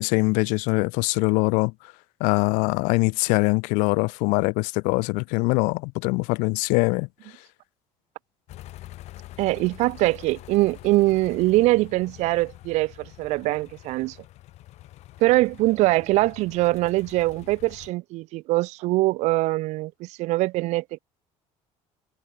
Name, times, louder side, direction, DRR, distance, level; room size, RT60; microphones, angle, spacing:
voice 1, 0.0-1.7 2.2-7.1, left 29 dB, 90° left, 1.3 m, -23 dB
sound 1, 8.5-17.9, left 16 dB, 60° left, 3.0 m, -45 dB
voice 2, 9.4-14.2 15.2-21.0, right 20 dB, 65° right, 0.4 m, -23 dB
cardioid pair, 145°, 13 cm